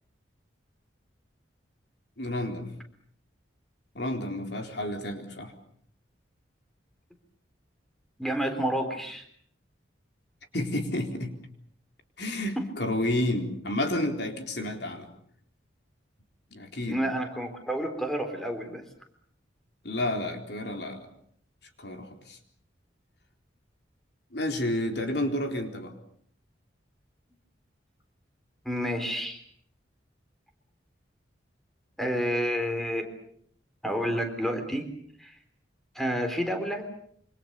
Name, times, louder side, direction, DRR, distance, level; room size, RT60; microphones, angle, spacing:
voice 1, 2.2-2.7 4.0-5.5 10.5-11.3 12.2-15.1 16.5-17.0 19.8-21.1 21.8-22.4 24.3-25.9, left 1 dB, 60° left, 4 dB, 4.0 m, -30 dB
voice 2, 8.2-9.3 12.6-12.7 16.8-18.8 28.6-29.4 32.0-33.1 33.8-34.9 35.2-35.4 35.9-36.9, equal, ahead, 5 dB, 3.9 m, -29 dB
27.5 x 26.0 x 6.9 m, 0.65 s
head